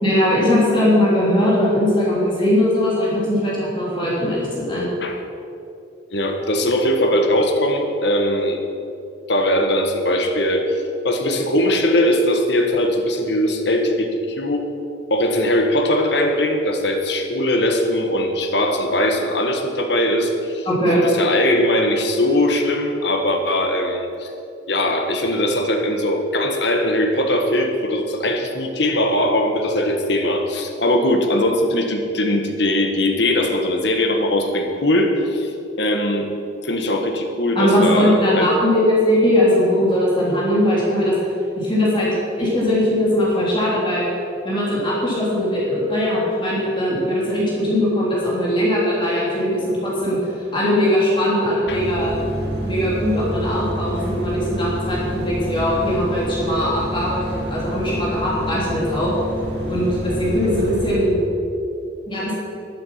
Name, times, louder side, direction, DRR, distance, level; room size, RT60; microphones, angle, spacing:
voice 1, 0.0-4.9 20.6-21.0 37.5-41.1 41.6-42.1 42.4-44.1 44.4-52.2 52.6-59.1 59.7-61.2 62.1-62.3, left 1 dB, 25° left, -6 dB, 3.3 m, -20 dB
voice 2, 6.1-8.6 9.3-14.7 15.1-20.7 20.9-24.3 24.7-35.5 35.8-36.3 36.6-38.5 51.7-51.9, left 1 dB, 60° left, 4 dB, 1.4 m, -20 dB
sound 1, 51.7-61.0, equal, 60° right, 1.9 m, -28 dB
12.0 x 11.5 x 5.7 m, 2.7 s
head